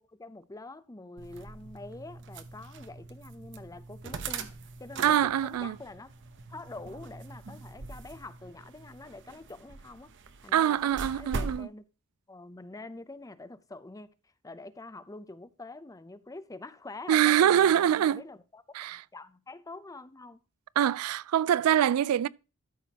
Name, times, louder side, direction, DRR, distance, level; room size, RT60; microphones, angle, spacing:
voice 1, 0.1-6.1 6.5-10.1 10.4-11.8 12.3-14.1 14.4-18.6 19.1-20.4, left 2 dB, 15° left, 0.5 m, -45 dB
sound 1, 1.2-11.6, right 4 dB, 55° right, 0.8 m, -42 dB
voice 2, 5.0-5.8 10.5-11.7 17.1-18.2 18.7-19.0 20.8-22.3, right 10 dB, 85° right, 0.3 m, -24 dB
13.0 x 6.1 x 2.9 m
head